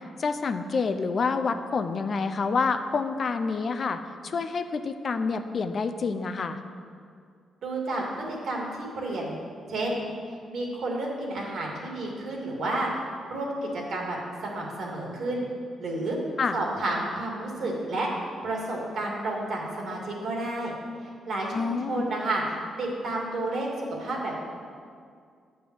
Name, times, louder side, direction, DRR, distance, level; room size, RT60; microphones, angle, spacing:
voice 1, 0.2-6.6 16.4-16.6 21.5-22.1, left 4 dB, 45° left, 8 dB, 0.6 m, -28 dB
voice 2, 7.6-9.4 9.7-10.0 10.3-12.9 13.3-15.5 15.8-16.2 16.5-18.1 18.4-20.7 21.0-22.4 22.8-24.4, right 2 dB, 70° right, -2 dB, 2.6 m, -31 dB
10.0 x 5.5 x 7.7 m, 2.2 s
cardioid pair, 110°, 0 cm